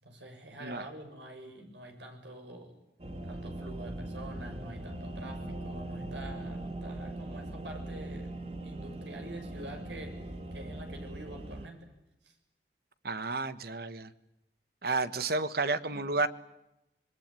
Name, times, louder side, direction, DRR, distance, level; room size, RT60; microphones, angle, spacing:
voice 1, 0.0-2.8 3.2-8.3 8.6-11.9 12.2-12.4 15.9-16.0, right 1 dB, 80° right, 4 dB, 6.9 m, -46 dB
sound 1, 3.0-11.7, right 1 dB, 35° right, 2.5 m, -40 dB
voice 2, 13.0-14.1 14.8-16.3, right 3 dB, 60° right, 13 dB, 1.4 m, -31 dB
26.5 x 22.0 x 9.1 m, 0.91 s
head